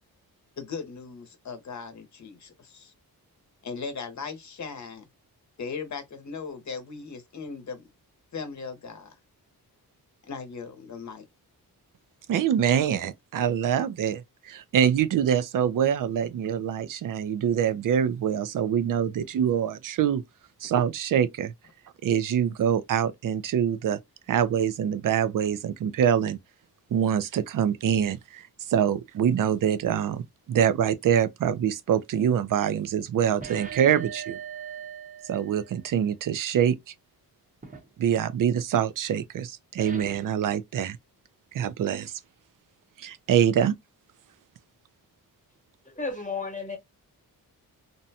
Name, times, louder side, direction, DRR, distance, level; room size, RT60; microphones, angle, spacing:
voice 1, 0.6-2.9 3.6-5.0 5.6-7.9 8.3-9.1 10.3-11.2, left 5 dB, 50° left, 0.9 m, -38 dB
voice 2, 12.3-20.2 20.6-21.5 22.0-24.0 24.3-26.4 26.9-34.4 35.3-36.9 38.0-41.0 41.5-42.1 43.0-43.7, right 9 dB, 60° right, 0.5 m, -25 dB
sound 1, 33.4-36.0 37.6-37.9 39.8-40.4, right 7 dB, 20° right, 0.8 m, -40 dB
voice 3, 45.8-46.8, left 4 dB, 20° left, 1.1 m, -33 dB
2.6 x 2.1 x 2.7 m
wide cardioid pair, 105°, 37 cm